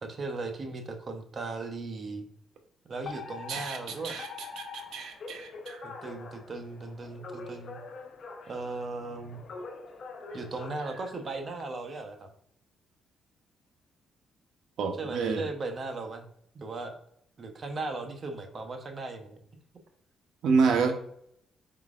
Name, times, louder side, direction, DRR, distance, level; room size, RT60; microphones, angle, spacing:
voice 1, 0.0-2.3 2.9-4.2 5.8-7.8 8.5-9.4 10.3-12.3 15.0-16.3 16.5-16.9 17.4-19.4, right 3 dB, 40° right, 5 dB, 0.8 m, -37 dB
Alarm, 3.0-11.6, left 4 dB, 55° left, 0.6 m, -44 dB
voice 2, 3.5-4.3 4.6-5.8 14.8-15.4 20.4-20.9, right 5 dB, 75° right, 6 dB, 0.7 m, -28 dB
4.5 x 3.8 x 2.4 m, 0.70 s
cardioid pair, 90°, 0 cm